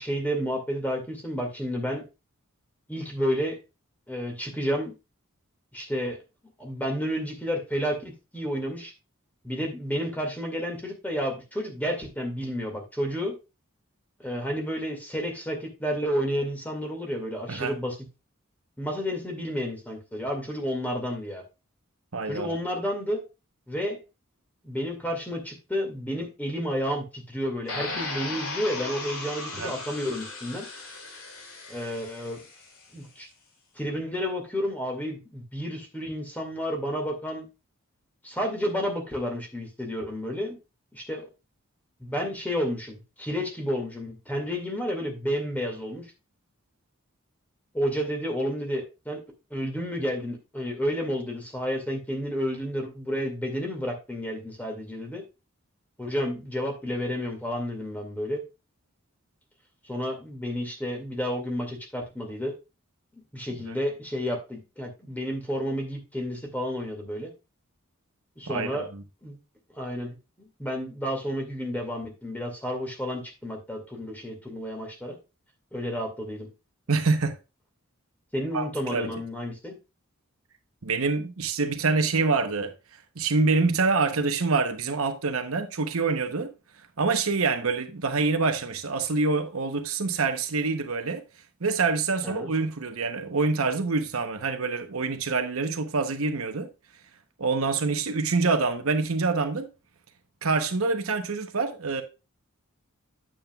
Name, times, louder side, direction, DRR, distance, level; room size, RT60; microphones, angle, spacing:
voice 1, 0.0-2.0 2.9-3.6 4.1-4.9 5.7-6.2 6.6-8.9 9.4-13.3 14.2-18.0 18.8-21.4 22.3-23.2 23.7-24.0 24.6-30.6 31.7-32.4 32.9-33.3 33.8-37.5 38.2-40.6 40.9-41.3 42.0-46.1 47.7-49.2 49.5-55.2 56.0-58.4 59.9-62.5 63.3-67.3 68.4-68.9 69.2-69.4 69.8-75.2 75.7-76.5 78.3-79.8 92.2-92.5, equal, 10° left, 2.1 m, -31 dB
voice 2, 22.1-22.5 29.5-29.7 63.7-63.8 68.5-69.0 76.9-77.4 78.5-79.1 80.8-82.7 83.2-86.5 87.0-91.2 91.6-96.7 97.4-99.7 100.4-102.0, right 4 dB, 75° right, 1.0 m, -26 dB
sound 1, 27.7-32.7, left 3 dB, 75° left, 2.5 m, -37 dB
9.0 x 7.4 x 2.3 m
head